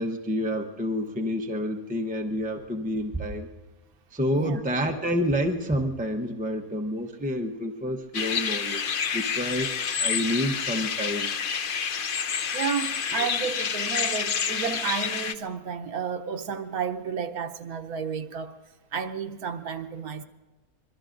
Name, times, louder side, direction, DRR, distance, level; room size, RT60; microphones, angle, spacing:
voice 1, 0.0-3.5 4.1-9.7 10.0-11.3 13.2-13.3, equal, 10° right, 0.5 m, -28 dB
sound 1, 8.1-15.3, left 7 dB, 55° left, 0.6 m, -28 dB
voice 2, 12.5-18.5 18.9-20.2, right 6 dB, 90° right, 1.3 m, -32 dB
25.5 x 22.0 x 2.6 m
omnidirectional pair, 1.5 m